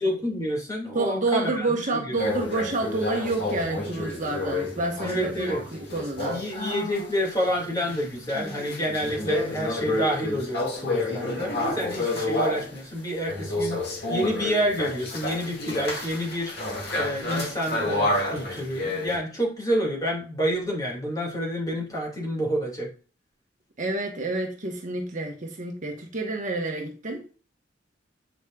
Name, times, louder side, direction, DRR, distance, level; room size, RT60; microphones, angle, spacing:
voice 1, 0.0-1.7 2.0-2.1 5.0-5.6 6.3-22.9, equal, 20° left, 2.3 m, -28 dB
voice 2, 0.9-6.4 23.8-27.2, right 2 dB, 45° right, 1.3 m, -29 dB
sound 1, 2.2-12.8 13.3-19.2, left 2 dB, 60° left, 2.2 m, -30 dB
8.2 x 5.0 x 2.4 m
head